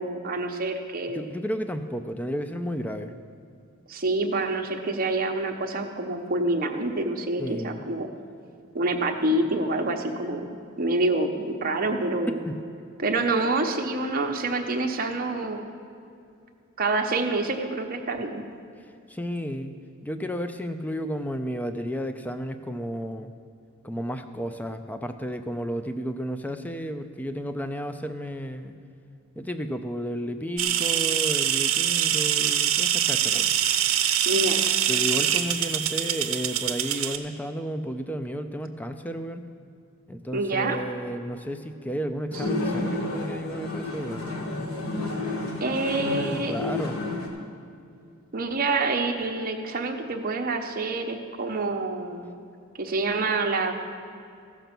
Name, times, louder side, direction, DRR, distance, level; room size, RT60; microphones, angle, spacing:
voice 1, 0.0-1.3 3.9-8.1 8.7-10.5 10.8-12.4 13.0-15.7 16.8-18.4 34.3-34.6 40.3-40.8 45.6-46.6 48.3-52.3 52.8-53.7, right 2 dB, 45° right, 3 dB, 0.9 m, -27 dB
voice 2, 1.1-3.1 7.4-7.9 12.5-12.6 19.1-23.3 23.8-28.8 29.4-33.6 34.9-39.4 40.1-44.3 46.1-47.0, equal, 10° left, 8 dB, 0.5 m, -32 dB
sound 1, 30.6-37.2, right 10 dB, 70° right, 0.7 m, -24 dB
sound 2, 42.3-47.3, left 2 dB, 80° left, 1.6 m, -30 dB
15.0 x 6.8 x 6.0 m, 2.4 s
head